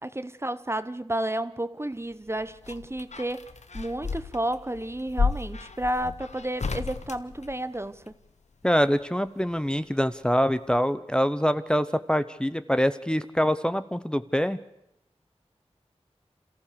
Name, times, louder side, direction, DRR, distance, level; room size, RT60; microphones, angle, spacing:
voice 1, 0.0-3.5 3.7-8.1, right 1 dB, 20° right, 0.8 m, -31 dB
sound 1, 2.1-8.1 9.6-10.4 10.7-10.8, left 5 dB, 85° left, 1.0 m, -33 dB
voice 2, 8.6-14.6, equal, 10° left, 0.8 m, -25 dB
27.5 x 14.5 x 6.8 m
wide cardioid pair, 45°, 11 cm